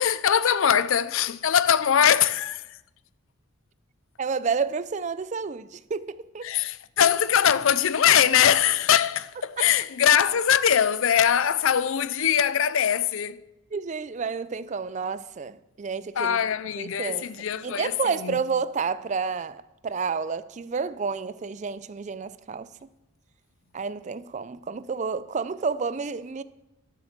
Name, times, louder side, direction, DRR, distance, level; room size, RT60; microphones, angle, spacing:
voice 1, 0.0-2.6 6.4-13.4 16.2-17.9 18.2-18.4, left 9 dB, 65° left, 0.4 m, -22 dB
voice 2, 4.2-6.5 9.6-9.7 13.7-16.4 16.8-17.3 17.6-22.9 23.7-26.4, right 5 dB, 35° right, 0.3 m, -30 dB
12.0 x 6.8 x 7.4 m
head